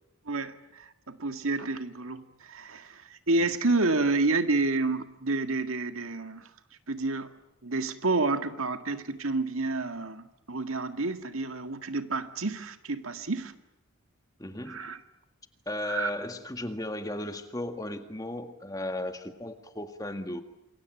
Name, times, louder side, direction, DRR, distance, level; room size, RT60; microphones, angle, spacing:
voice 1, 0.3-6.5 6.9-7.3 7.6-13.5 14.7-15.0 15.8-16.1, right 3 dB, 80° right, 8 dB, 1.9 m, -29 dB
voice 2, 14.4-14.9 15.7-20.4, left 1 dB, 15° left, 7 dB, 1.8 m, -35 dB
28.0 x 23.0 x 9.2 m, 0.87 s
head